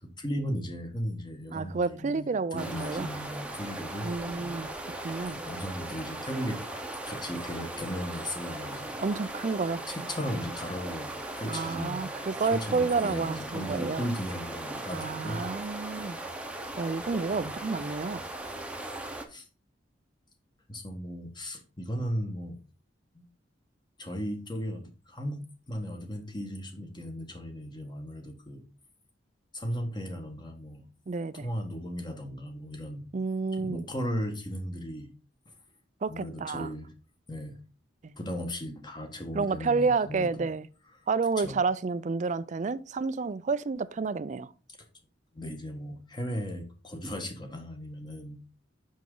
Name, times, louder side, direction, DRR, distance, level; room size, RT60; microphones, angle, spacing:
voice 1, 0.0-4.6 5.3-6.6 7.1-9.0 9.9-12.0 12.5-15.4 19.3-19.5 20.7-22.6 23.1-23.2 24.0-25.4 25.7-28.6 29.5-30.9 31.3-33.1 33.5-35.1 35.5-35.6 36.1-36.9 37.3-37.6 38.2-40.5 41.4-41.6 45.3-48.4, equal, 25° left, 1.4 m, -36 dB
voice 2, 1.5-3.1 4.0-4.7 5.0-5.4 9.0-9.8 11.5-14.1 14.9-16.2 16.8-18.2 31.1-31.4 33.1-33.8 36.0-36.7 38.0-38.1 39.3-40.7 41.1-44.5, right 4 dB, 40° right, 0.4 m, -30 dB
sound 1, 2.6-19.3, right 1 dB, 5° right, 0.9 m, -38 dB
6.1 x 5.9 x 3.8 m
head